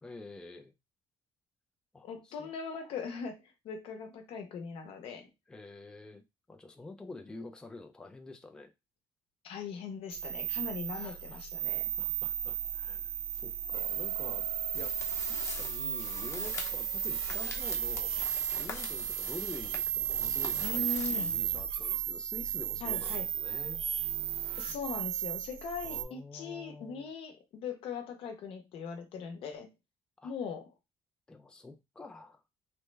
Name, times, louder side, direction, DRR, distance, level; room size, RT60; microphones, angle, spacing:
voice 1, 0.0-0.7 1.9-2.5 2.8-2.9 5.5-6.2 6.5-8.7 10.8-11.6 12.0-14.5 14.7-18.2 18.5-23.8 25.8-27.1 30.2-30.3 31.3-32.4, left 2 dB, 10° left, 0.4 m, -48 dB
voice 2, 2.0-5.3 9.4-11.9 20.6-21.3 22.8-23.3 24.6-29.7 30.2-30.7, left 6 dB, 75° left, 0.8 m, -40 dB
sound 1, 10.1-26.0, right 10 dB, 75° right, 0.4 m, -34 dB
sound 2, 14.7-21.9, left 3 dB, 30° left, 0.8 m, -43 dB
3.2 x 2.1 x 3.2 m
cardioid pair, 130°, 10 cm